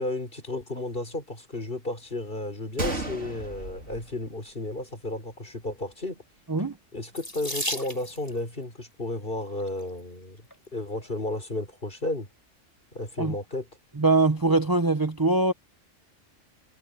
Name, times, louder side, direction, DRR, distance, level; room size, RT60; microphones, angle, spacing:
voice 1, 0.0-6.2 6.9-10.4 10.7-12.3 12.9-13.7, left 2 dB, 45° left, 4.7 m, -33 dB
Gunshot gunfire, 2.8-4.8 5.1-5.2 5.9-6.1, right 2 dB, 75° right, 4.2 m, -34 dB
Water tap faucet / Sink (filling or washing), 7.1-8.4 9.4-9.8 10.5-10.6 10.9-11.1, left 1 dB, 15° left, 5.5 m, -34 dB
voice 2, 14.0-15.5, right 3 dB, 20° right, 0.8 m, -22 dB
omnidirectional pair, 1.2 m